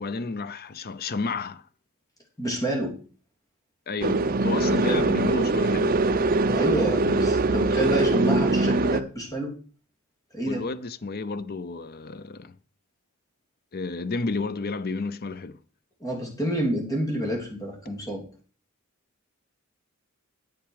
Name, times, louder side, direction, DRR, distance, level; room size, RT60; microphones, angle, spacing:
voice 1, 0.0-1.7 3.9-6.0 10.5-12.5 13.7-15.6, left 3 dB, 45° left, 0.6 m, -31 dB
voice 2, 2.4-2.9 4.6-5.0 6.5-9.5 10.3-10.6 16.0-18.2, right 1 dB, 15° left, 3.1 m, -28 dB
sound 1, 4.0-9.0, right 2 dB, 45° right, 0.7 m, -22 dB
10.5 x 8.1 x 4.8 m
head